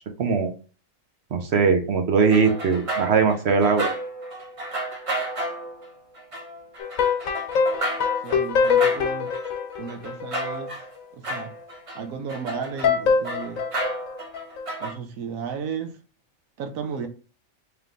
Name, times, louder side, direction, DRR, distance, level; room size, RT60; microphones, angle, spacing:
voice 1, 0.2-0.5 1.3-3.9, right 5 dB, 60° right, 5 dB, 0.9 m, -20 dB
sound 1, 2.3-11.0 11.2-14.9, right 1 dB, 30° right, 0.7 m, -33 dB
sound 2, 6.8-10.6 12.8-14.7, left 6 dB, 85° left, 1.2 m, -23 dB
voice 2, 8.2-9.3 9.8-10.7 11.1-11.5 11.9-13.6 14.8-16.0 16.6-17.1, right 6 dB, 90° right, 6 dB, 1.1 m, -34 dB
3.3 x 3.0 x 3.7 m, 0.36 s
omnidirectional pair, 1.4 m